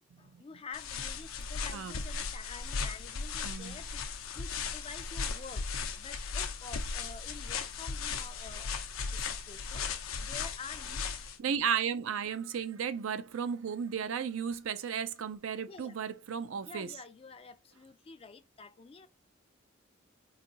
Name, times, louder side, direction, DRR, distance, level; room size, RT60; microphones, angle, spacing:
voice 1, 0.2-8.8 9.1-11.1 15.7-16.0 16.6-19.1, left 5 dB, 30° left, 0.3 m, -49 dB
sound 1, 0.7-11.4, left 5 dB, 85° left, 0.6 m, -37 dB
voice 2, 1.7-2.0 3.4-3.8 11.4-16.9, right 7 dB, 75° right, 0.4 m, -34 dB
4.0 x 2.6 x 2.7 m
head